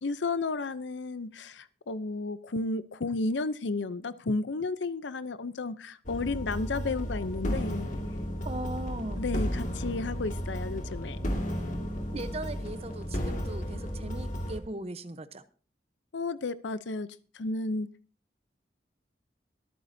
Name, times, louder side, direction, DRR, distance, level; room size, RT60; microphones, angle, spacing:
voice 1, 0.0-7.9 9.2-11.2 16.1-17.1 17.3-17.9, left 3 dB, 90° left, 15 dB, 0.7 m, -32 dB
sound 1, 6.1-14.6, equal, 45° left, 2.0 m, -33 dB
voice 2, 8.4-9.2 12.1-15.4, right 1 dB, 35° right, 11 dB, 0.9 m, -38 dB
23.0 x 9.4 x 2.7 m, 0.39 s
head